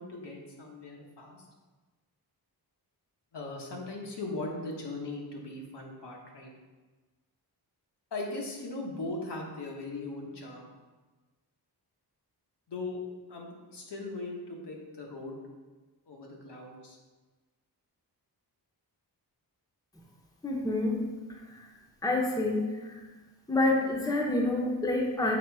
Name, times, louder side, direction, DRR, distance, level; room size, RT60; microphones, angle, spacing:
voice 1, 0.0-1.5 3.3-6.5 8.1-10.7 12.7-13.0 13.3-15.4 16.1-17.0, left 2 dB, 85° left, -1 dB, 1.3 m, -39 dB
voice 2, 20.4-21.0 22.0-23.0 23.5-25.4, left 2 dB, 10° left, -1 dB, 0.7 m, -27 dB
7.4 x 3.6 x 4.8 m, 1.3 s
wide cardioid pair, 170°, 40 cm